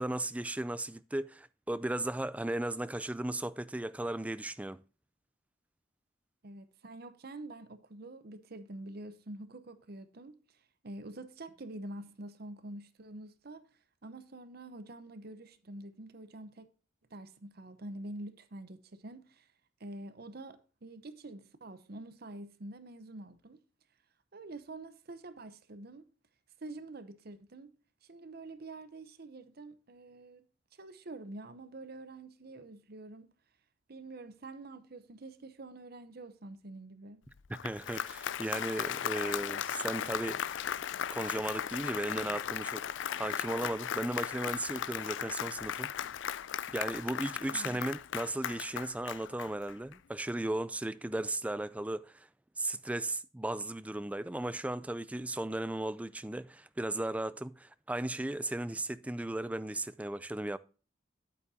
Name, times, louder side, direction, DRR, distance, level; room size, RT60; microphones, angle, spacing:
voice 1, 0.0-4.8 37.5-40.4 41.1-42.8 43.2-45.9 46.7-52.3 52.6-60.6, right 1 dB, 5° right, 0.3 m, -36 dB
voice 2, 6.4-10.4 10.8-13.6 14.0-16.7 17.1-19.5 19.8-23.6 24.3-26.1 26.6-27.7 28.0-30.4 30.7-33.3 33.9-37.2 47.5-47.8, right 2 dB, 55° right, 0.8 m, -46 dB
Applause, 37.4-49.9, left 9 dB, 70° left, 0.4 m, -37 dB
9.2 x 8.5 x 2.7 m
head